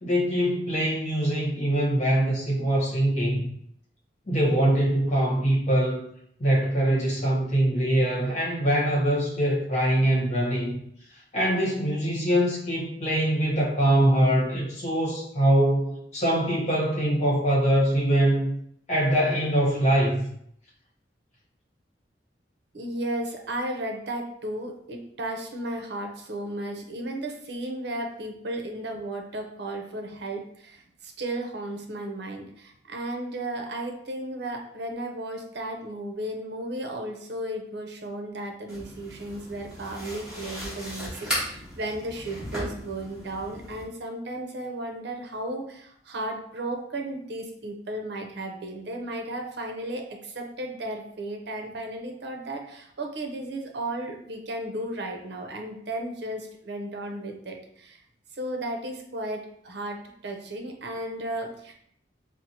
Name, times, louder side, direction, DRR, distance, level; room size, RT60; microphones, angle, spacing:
voice 1, 0.0-3.5 4.3-6.0 6.4-10.8 11.1-18.5 18.9-20.3, right 1 dB, 40° left, -4 dB, 1.1 m, -23 dB
voice 2, 22.7-58.0 58.3-61.7, right 1 dB, 65° right, 3 dB, 0.6 m, -34 dB
sound 1, 38.7-43.8, equal, 5° right, 1.3 m, -36 dB
4.3 x 2.0 x 2.8 m, 0.68 s
head